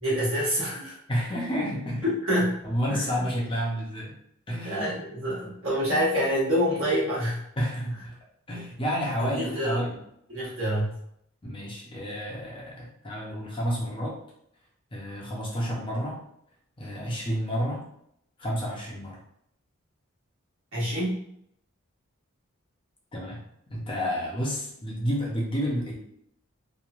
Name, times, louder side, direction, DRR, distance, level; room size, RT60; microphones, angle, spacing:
voice 1, 0.0-1.0 2.0-2.6 2.9-3.3 4.6-7.4 8.5-8.6 9.2-9.8 10.3-11.0 20.7-21.2, equal, 70° right, -7 dB, 1.2 m, -27 dB
voice 2, 1.1-2.0 2.6-4.1 4.5-4.9 7.6-8.2 8.5-9.9 11.4-14.1 14.9-16.2 16.8-17.9 18.4-19.2 23.1-23.4 23.7-25.9, equal, 25° left, -3 dB, 0.5 m, -30 dB
2.9 x 2.1 x 2.4 m, 0.73 s
head